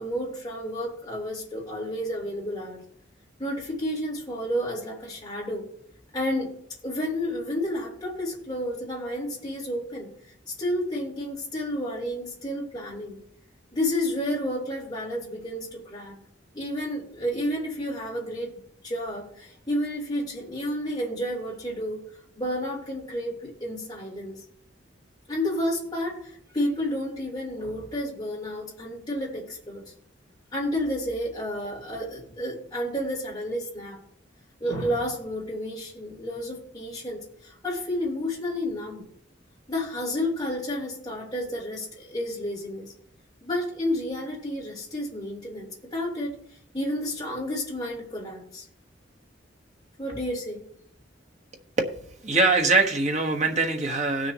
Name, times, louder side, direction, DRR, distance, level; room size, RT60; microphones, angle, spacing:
voice 1, 0.0-2.8 3.4-5.6 6.1-6.5 6.8-10.1 10.5-13.2 13.7-16.1 16.5-18.6 18.8-22.0 22.4-24.4 25.3-29.8 30.5-34.0 34.6-39.0 39.7-42.9 43.4-46.4 46.7-48.6 50.0-50.6, left 1 dB, 20° left, -4 dB, 4.0 m, -31 dB
voice 2, 51.8-54.3, right 3 dB, 40° right, 3 dB, 1.4 m, -23 dB
18.5 x 6.5 x 3.1 m, 0.62 s
head